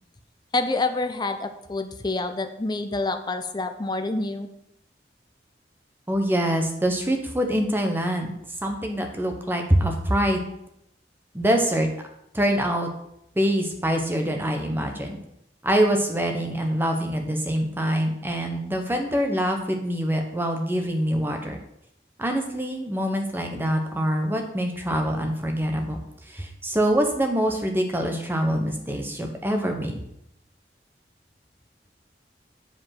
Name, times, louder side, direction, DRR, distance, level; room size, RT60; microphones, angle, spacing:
voice 1, 0.5-4.5, left 2 dB, 25° left, 8 dB, 0.6 m, -27 dB
voice 2, 6.1-8.3 8.6-10.5 11.3-11.9 12.3-12.9 13.3-15.2 15.6-21.6 22.2-26.0 26.3-30.0, equal, 10° right, 3 dB, 1.0 m, -25 dB
7.3 x 5.1 x 5.8 m, 0.77 s
head